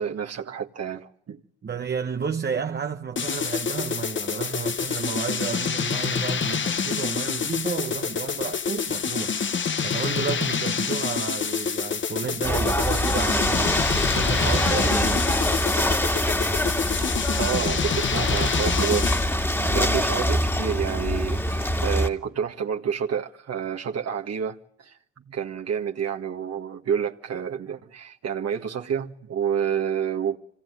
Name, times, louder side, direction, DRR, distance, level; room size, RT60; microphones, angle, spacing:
voice 1, 0.0-1.4 17.4-19.1 19.4-24.9 25.3-30.4, right 8 dB, 55° right, 1.9 m, -29 dB
voice 2, 1.6-15.3 19.5-19.9 25.2-25.4, right 6 dB, 35° right, 1.1 m, -32 dB
sound 1, 3.2-19.4, left 6 dB, 40° left, 1.3 m, -27 dB
Ocean / Boat Water vehicle, 12.4-22.1, left 1 dB, 10° left, 2.2 m, -24 dB
25.5 x 18.0 x 9.6 m
cardioid pair, 90°, 30 cm